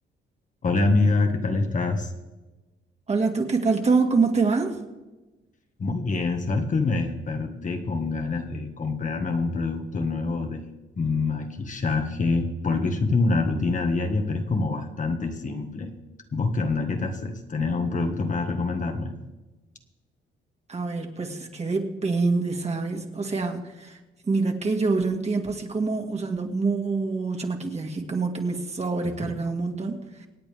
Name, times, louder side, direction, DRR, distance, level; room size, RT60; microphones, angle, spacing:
voice 1, 0.6-2.1 5.8-10.6 11.0-15.9 16.3-19.1 29.0-29.3, left 3 dB, 40° left, 4 dB, 1.6 m, -26 dB
voice 2, 3.1-4.8 20.7-24.0 24.3-30.3, right 4 dB, 35° right, 3 dB, 2.2 m, -26 dB
26.0 x 8.8 x 3.5 m, 1.1 s
cardioid pair, 90°, 20 cm